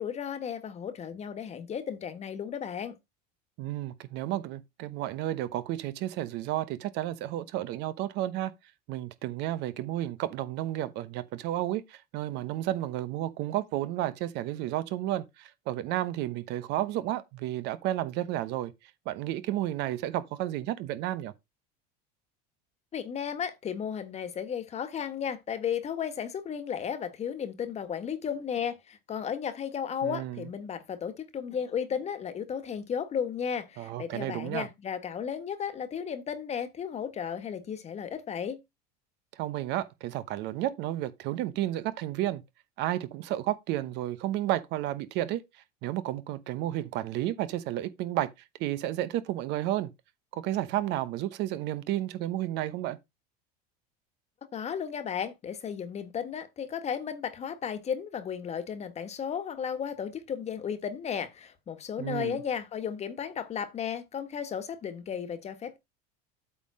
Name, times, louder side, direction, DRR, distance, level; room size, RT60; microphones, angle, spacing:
voice 1, 0.0-2.9 22.9-38.6 54.5-65.8, left 8 dB, 30° left, 1.5 m, -34 dB
voice 2, 3.6-8.5 8.9-18.7 19.1-21.3 30.0-30.4 33.8-34.7 39.3-42.4 42.8-45.4 45.8-48.3 48.6-49.9 50.3-53.0 62.0-62.4, right 14 dB, 55° right, 0.9 m, -32 dB
8.4 x 3.7 x 6.2 m
supercardioid pair, 110°, 20 cm